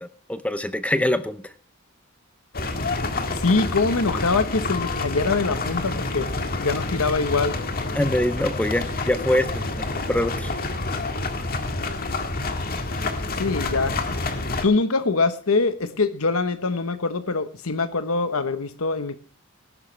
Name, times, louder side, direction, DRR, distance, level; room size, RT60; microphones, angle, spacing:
voice 1, 0.0-1.4 7.9-9.7 10.0-10.5, left 1 dB, 5° left, 12 dB, 0.7 m, -24 dB
sound 1, 2.5-14.7, left 2 dB, 45° left, 1.7 m, -28 dB
voice 2, 3.3-6.3 6.6-7.6 13.3-14.0 14.6-19.2, left 3 dB, 90° left, 10 dB, 1.1 m, -23 dB
18.5 x 11.0 x 3.3 m, 0.39 s
head